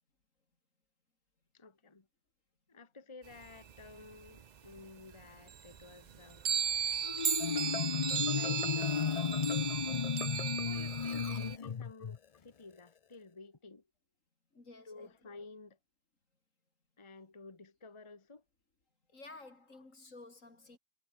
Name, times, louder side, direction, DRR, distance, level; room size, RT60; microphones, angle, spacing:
voice 1, 1.5-2.1 2.7-6.4 7.4-9.6 10.6-13.8 14.8-15.8 17.0-18.4 19.7-19.9, left 3 dB, 25° left, 1.4 m, -53 dB
sound 1, 3.3-4.8 5.1-5.2 5.5-11.6, right 8 dB, 45° right, 0.6 m, -36 dB
Marimba xylophone, 7.0-12.2, left 7 dB, 45° left, 0.5 m, -34 dB
voice 2, 14.5-15.1 19.1-20.8, left 2 dB, 75° left, 4.5 m, -53 dB
omnidirectional pair, 1.4 m